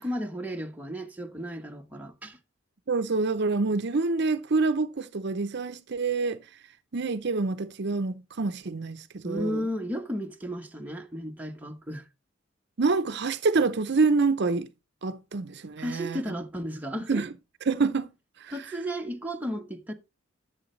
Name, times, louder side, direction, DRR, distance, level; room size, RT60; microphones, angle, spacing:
voice 1, 0.0-2.4 9.2-12.1 15.8-17.2 18.5-19.9, equal, 10° right, 1.1 m, -34 dB
voice 2, 2.9-6.4 6.9-9.7 12.8-14.7 15.0-16.2 17.1-17.3 17.7-18.1 18.4-18.6, right 3 dB, 60° right, 0.7 m, -27 dB
11.0 x 7.6 x 3.2 m
head